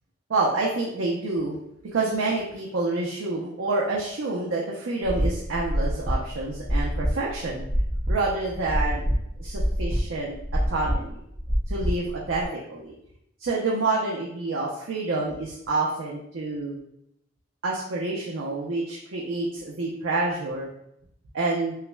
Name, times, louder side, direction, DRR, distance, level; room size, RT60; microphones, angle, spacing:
voice 1, 0.3-1.6 1.9-7.6 8.1-9.0 9.4-10.4 10.7-11.2 11.7-12.9 13.4-16.8 17.6-20.7 21.3-21.7, right 3 dB, 90° right, -3 dB, 0.5 m, -28 dB
sound 1, 5.0-12.4, equal, 25° right, 0.5 m, -27 dB
5.5 x 2.1 x 2.2 m, 0.76 s
head